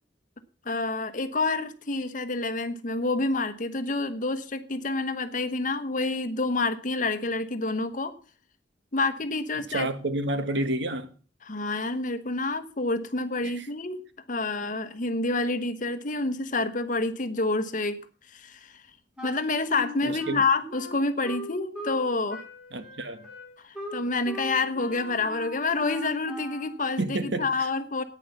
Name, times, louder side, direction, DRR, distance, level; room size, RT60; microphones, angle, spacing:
voice 1, 0.6-8.1 8.9-9.9 11.4-14.0 14.3-18.0 18.3-18.8 19.2-22.4 23.6-28.0, left 3 dB, 45° left, 1.1 m, -28 dB
voice 2, 9.7-11.1 13.4-13.7 20.0-20.4 22.7-23.3 27.0-27.7, right 1 dB, 70° right, 1.3 m, -30 dB
Wind instrument woodwind instrument, 19.2-22.0 22.3-26.8, equal, 5° right, 4.5 m, -39 dB
10.0 x 9.2 x 7.0 m
head